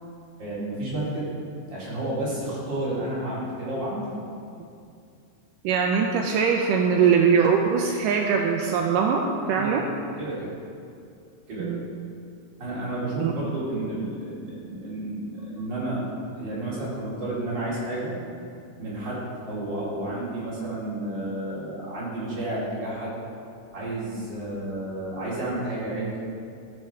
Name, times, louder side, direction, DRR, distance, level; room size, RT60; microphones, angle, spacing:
voice 1, 0.4-1.3 1.7-4.1 9.6-9.7 10.2-10.5 11.5-11.7 12.6-16.0 16.3-18.1 18.8-23.1 23.7-26.2, right 1 dB, 30° right, -8 dB, 3.6 m, -31 dB
voice 2, 5.6-9.9 11.6-11.9 13.2-13.3, right 6 dB, 80° right, 2 dB, 2.0 m, -22 dB
15.5 x 6.6 x 4.7 m, 2.4 s
omnidirectional pair, 4.2 m